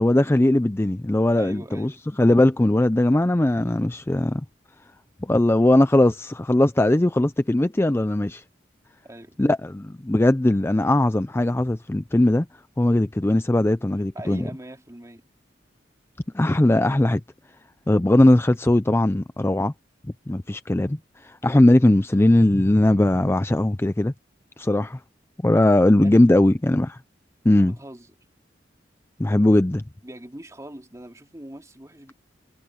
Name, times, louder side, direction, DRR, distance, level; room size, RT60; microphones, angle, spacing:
voice 1, 0.0-1.9 2.2-4.4 5.2-8.4 9.4-12.5 12.8-14.5 16.3-17.2 17.9-19.7 20.3-24.1 24.6-25.0 25.4-27.0 27.4-27.7 29.2-29.8, left 1 dB, 15° left, 0.4 m, -19 dB
voice 2, 1.4-2.1 9.0-9.4 14.1-15.2 25.8-26.2 27.6-28.1 30.0-32.1, right 1 dB, 15° right, 3.0 m, -41 dB
head